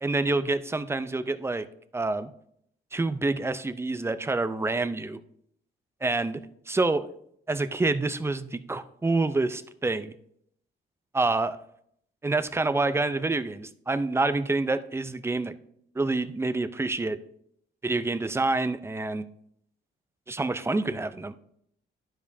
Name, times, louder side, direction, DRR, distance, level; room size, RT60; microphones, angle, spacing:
voice 1, 0.0-1.7 1.9-2.3 2.9-5.2 6.0-7.1 7.5-10.1 11.1-11.6 12.2-15.6 16.0-17.2 17.8-19.3 20.3-21.4, right 3 dB, 15° right, 12 dB, 0.4 m, -27 dB
12.0 x 5.0 x 2.7 m, 0.70 s
cardioid pair, 90°, 20 cm